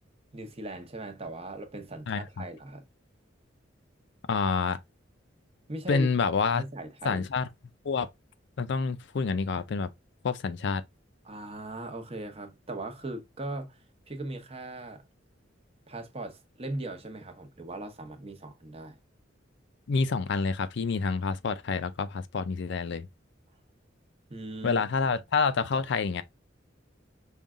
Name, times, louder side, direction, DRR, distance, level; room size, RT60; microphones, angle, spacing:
voice 1, 0.3-2.8 5.7-6.1 6.5-7.2 11.2-15.0 15.9-19.0 24.3-24.8, right 2 dB, 30° right, 0.9 m, -39 dB
voice 2, 2.1-2.4 4.3-4.8 5.9-6.6 7.0-7.5 7.8-8.1 8.6-9.9 10.2-10.8 19.9-23.1 24.6-26.2, left 4 dB, 65° left, 0.5 m, -28 dB
5.4 x 2.3 x 3.6 m
head